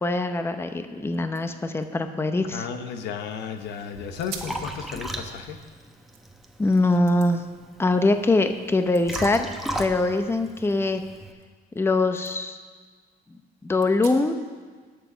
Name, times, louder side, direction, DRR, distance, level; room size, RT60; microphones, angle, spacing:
voice 1, 0.0-2.6 6.6-7.4 7.8-9.5 9.8-11.0 11.8-12.6 13.6-14.4, left 2 dB, 15° left, 7 dB, 0.8 m, -23 dB
sound 1, 0.7-0.8 1.1-3.3 3.7-3.8 4.2-4.7 5.1-6.5 7.1-7.3 8.7-9.8 10.1-11.9 12.2-12.3 12.8-12.9 13.8-14.5, right 7 dB, 80° right, 1.6 m, -46 dB
voice 2, 2.5-5.6, left 7 dB, 80° left, 7 dB, 1.1 m, -34 dB
Liquid, 3.6-11.3, right 1 dB, ahead, 1.1 m, -37 dB
18.0 x 7.0 x 5.1 m, 1.5 s
cardioid pair, 110°, 17 cm